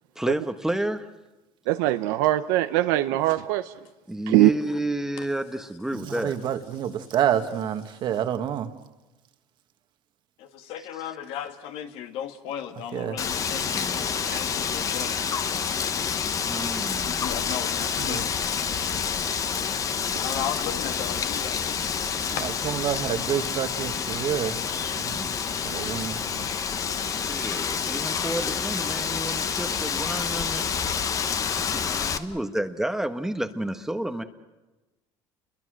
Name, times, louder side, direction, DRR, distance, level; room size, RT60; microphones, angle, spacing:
voice 1, 0.2-1.1 4.1-6.3 10.9-11.1 13.7-14.3 16.3-17.4 27.0-30.8 31.6-34.2, right 1 dB, 5° right, 1.1 m, -31 dB
voice 2, 1.7-3.7 4.3-4.5 14.3-14.4, right 16 dB, 90° right, 0.8 m, -22 dB
voice 3, 5.9-8.7 12.9-13.2 18.0-18.2 22.4-24.6 24.9-26.5, right 9 dB, 50° right, 1.7 m, -28 dB
voice 4, 10.4-15.1 17.0-18.3 20.2-22.1 22.4-22.5 31.3-31.7 32.0-32.4, left 9 dB, 70° left, 2.1 m, -36 dB
Wind, 13.2-32.2, left 7 dB, 35° left, 1.1 m, -28 dB
29.5 x 22.5 x 6.4 m
cardioid pair, 125°, 10 cm